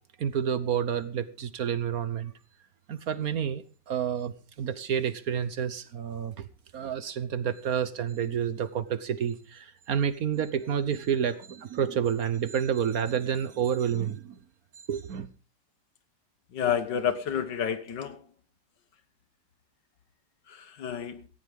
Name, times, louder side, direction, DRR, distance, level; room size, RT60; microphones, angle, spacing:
voice 1, 0.2-2.3 2.9-6.5 6.7-14.4 14.9-15.3, right 8 dB, 60° right, 1.3 m, -29 dB
voice 2, 16.5-18.2 20.5-21.3, left 8 dB, 75° left, 1.9 m, -30 dB
17.5 x 15.0 x 3.6 m
omnidirectional pair, 2.0 m